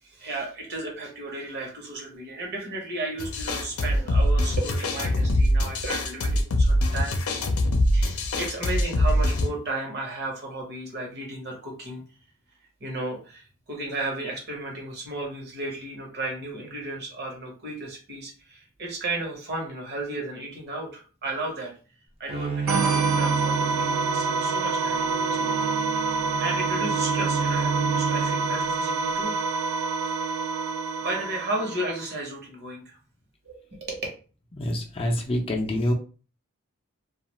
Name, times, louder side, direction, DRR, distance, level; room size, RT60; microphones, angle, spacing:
voice 1, 0.0-7.4 7.9-12.0 12.8-21.7 22.2-25.5 26.0-29.3 30.0-30.3 31.0-33.0 33.4-34.1, right 2 dB, 50° right, 0 dB, 1.0 m, -34 dB
sound 1, 3.2-9.5, left 1 dB, 80° left, 0.5 m, -23 dB
Bowed string instrument, 22.3-29.0, right 5 dB, 25° right, 0.5 m, -30 dB
sound 2, 22.7-32.1, right 4 dB, 85° right, 0.6 m, -27 dB
voice 2, 34.5-35.9, left 1 dB, 25° left, 1 dB, 0.5 m, -26 dB
2.4 x 2.3 x 3.0 m, 0.37 s
head